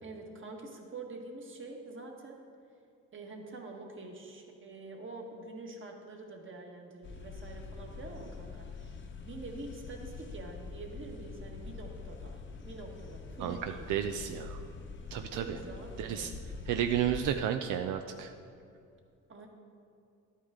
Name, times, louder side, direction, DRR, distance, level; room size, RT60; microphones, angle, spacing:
voice 1, 0.0-2.4 3.1-13.9 15.3-16.3 19.3-19.5, right 3 dB, 40° right, 2 dB, 1.5 m, -46 dB
sound 1, 7.0-17.3, left 4 dB, 40° left, 0.9 m, -45 dB
voice 2, 13.9-14.6 15.1-15.6 16.0-16.3 16.7-18.3, right 10 dB, 85° right, 6 dB, 0.5 m, -32 dB
11.5 x 8.4 x 3.7 m, 2.5 s
cardioid pair, 90°, 30 cm